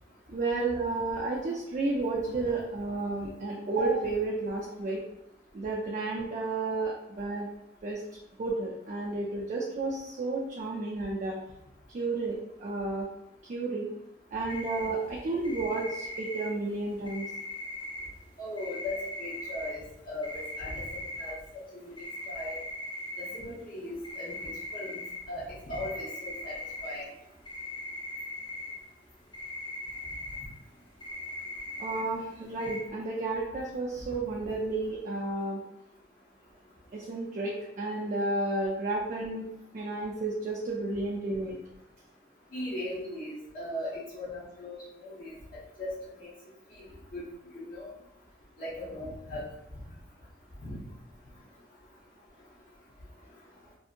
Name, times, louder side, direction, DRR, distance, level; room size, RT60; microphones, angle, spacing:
voice 1, 0.3-5.0 5.5-7.5 7.8-8.0 8.4-11.4 11.9-13.1 13.4-13.9 14.3-17.3 31.8-35.6 36.9-39.5 39.7-41.6, right 3 dB, 45° right, -3 dB, 0.4 m, -32 dB
sound 1, 14.5-14.9 15.4-16.5 17.1-18.0 18.6-19.7 20.2-21.3 22.0-23.4 24.0-25.2 25.7-26.9 27.4-28.7 29.1-30.4 31.0-32.0 32.6-32.8, left 1 dB, 25° left, 0.5 m, -39 dB
voice 2, 18.4-20.3 20.6-21.4 21.7-21.9 22.3-22.6 23.2-24.9 25.3-26.5 26.8-27.0 42.5-45.3 45.8-46.3 46.7-46.9 47.1-47.2 47.5-47.9 48.6-49.5 50.6-50.8, left 1 dB, 50° left, -11 dB, 0.9 m, -38 dB
2.7 x 2.6 x 2.5 m, 0.84 s
head